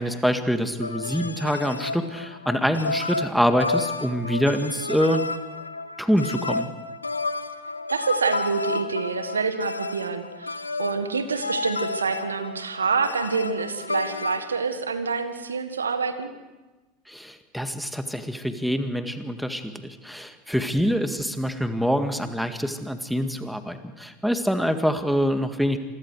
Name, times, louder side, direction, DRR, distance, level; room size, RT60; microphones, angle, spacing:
voice 1, 0.0-5.2 6.0-6.7 17.1-25.8, equal, ahead, 8 dB, 1.9 m, -25 dB
sound 1, 0.8-14.5, left 3 dB, 90° left, 0.8 m, -31 dB
voice 2, 7.9-16.3, right 5 dB, 85° right, 10 dB, 1.6 m, -27 dB
27.5 x 21.5 x 4.8 m, 1.1 s
figure-of-eight pair, 80°, 0 cm